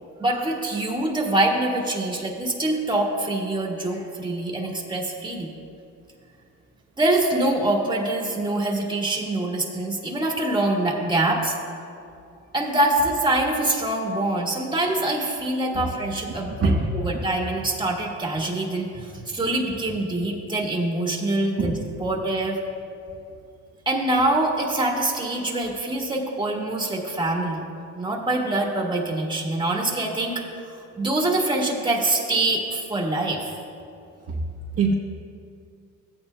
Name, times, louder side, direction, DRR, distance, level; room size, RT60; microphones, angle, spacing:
voice 1, 0.2-5.5 7.0-11.6 12.5-21.7 22.0-22.6 23.8-27.6 27.9-33.5, right 2 dB, 15° right, -1 dB, 1.6 m, -24 dB
voice 2, 16.6-16.9 21.6-21.7 34.3-34.4 34.8-34.9, right 3 dB, 50° right, -2 dB, 1.0 m, -22 dB
15.5 x 8.8 x 2.2 m, 2.4 s
cardioid pair, 90°, 30 cm